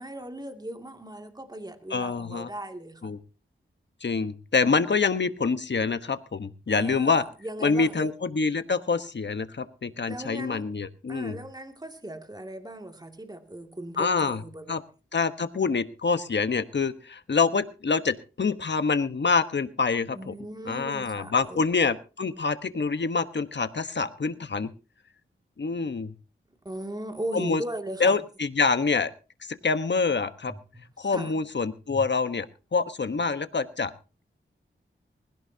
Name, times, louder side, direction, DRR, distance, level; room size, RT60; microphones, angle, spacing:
voice 1, 0.0-3.1 6.7-8.1 10.1-10.6 11.1-14.8 20.1-21.7 26.6-28.2 30.4-30.6 31.1-31.3 31.9-32.0, right 1 dB, 20° right, 5 dB, 2.4 m, -38 dB
voice 2, 1.9-2.5 3.0-3.2 4.0-7.2 7.6-11.4 14.0-14.4 14.7-14.8 15.1-20.3 20.6-24.7 25.6-26.1 27.3-27.6 28.0-29.1 29.4-30.5 31.0-32.5 32.7-33.9, left 4 dB, 60° left, 10 dB, 1.3 m, -26 dB
20.5 x 17.0 x 2.8 m, 0.34 s
wide cardioid pair, 75°, 21 cm